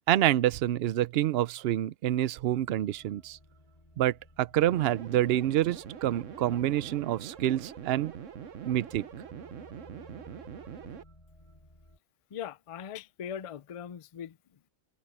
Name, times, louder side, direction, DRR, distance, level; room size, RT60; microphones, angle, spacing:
voice 1, 0.1-3.4 4.0-8.1 8.6-9.0, right 13 dB, 65° right, 0.7 m, -27 dB
sound 1, 2.4-12.0, left 1 dB, 25° left, 4.6 m, -57 dB
sound 2, 4.7-11.0, right 8 dB, 85° right, 1.4 m, -43 dB
voice 2, 12.3-14.4, left 9 dB, 60° left, 0.3 m, -40 dB
omnidirectional pair, 1.3 m